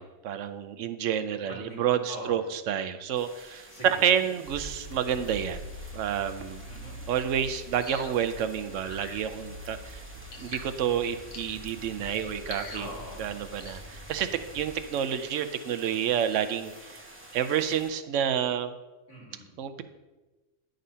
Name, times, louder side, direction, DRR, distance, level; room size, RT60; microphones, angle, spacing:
voice 1, 0.0-5.7 5.9-6.6 7.1-10.0 10.4-12.9 13.2-14.3 14.5-17.0 17.3-18.7 19.6-19.8, right 9 dB, 80° right, 11 dB, 1.0 m, -29 dB
voice 2, 1.4-1.8 2.1-2.4 3.7-4.0 6.6-7.0 12.8-13.3 19.1-19.5, left 1 dB, 75° left, -5 dB, 3.1 m, -42 dB
sound 1, 3.1-17.9, right 1 dB, 10° right, 1.0 m, -50 dB
sound 2, 4.4-14.8, equal, 20° left, 1.6 m, -45 dB
sound 3, 7.8-8.2 8.8-9.2 10.3-10.7 11.3-11.6 12.4-12.9 13.6-13.8, left 3 dB, 40° left, 0.8 m, -43 dB
10.0 x 3.9 x 5.5 m, 1.2 s
omnidirectional pair, 1.3 m